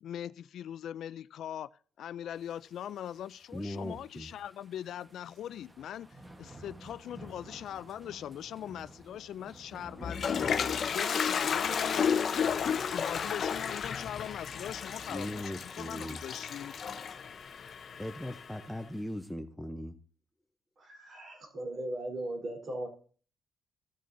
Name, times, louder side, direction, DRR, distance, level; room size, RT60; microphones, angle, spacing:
voice 1, 0.0-1.7 2.0-6.1 6.4-16.7, left 10 dB, 70° left, 0.3 m, -41 dB
sound 1, 2.3-19.3, right 1 dB, 15° right, 1.2 m, -55 dB
voice 2, 3.5-4.3 15.1-16.2 18.0-20.0, left 1 dB, 5° left, 0.7 m, -39 dB
Toilet flush, 9.8-18.6, left 7 dB, 55° left, 0.7 m, -32 dB
voice 3, 20.8-22.9, right 1 dB, 50° right, 3.7 m, -38 dB
15.5 x 6.5 x 2.6 m
cardioid pair, 90°, 0 cm